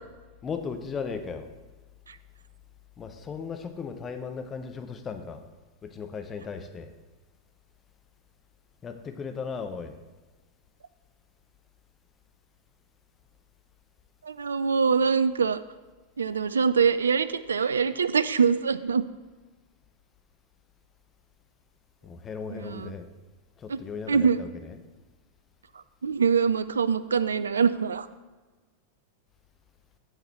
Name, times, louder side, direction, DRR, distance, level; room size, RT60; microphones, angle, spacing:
voice 1, 0.4-1.5 3.0-5.4 5.8-6.9 8.8-10.0 22.0-23.1 23.6-24.8, left 5 dB, 25° left, 0.8 m, -36 dB
voice 2, 14.2-15.6 16.2-19.0 22.7-22.9 23.7-23.8 24.1-24.4 26.0-28.1, right 6 dB, 70° right, 0.3 m, -24 dB
7.7 x 7.0 x 4.2 m
figure-of-eight pair, 90°, 0 cm